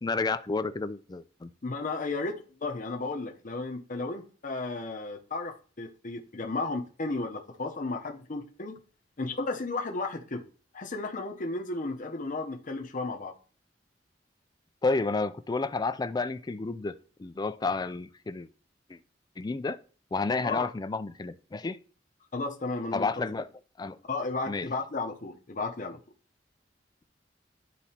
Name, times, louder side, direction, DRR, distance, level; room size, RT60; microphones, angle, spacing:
voice 1, 0.0-1.5 14.8-18.5 18.9-19.0 19.4-19.8 20.1-21.8 22.9-23.5 23.8-24.0 24.5-24.7, left 3 dB, 25° left, 0.4 m, -31 dB
voice 2, 1.6-8.8 9.2-10.5 10.7-13.3 20.4-20.7 22.3-23.4 24.1-26.0, left 3 dB, 45° left, 0.8 m, -34 dB
11.5 x 4.1 x 2.9 m
head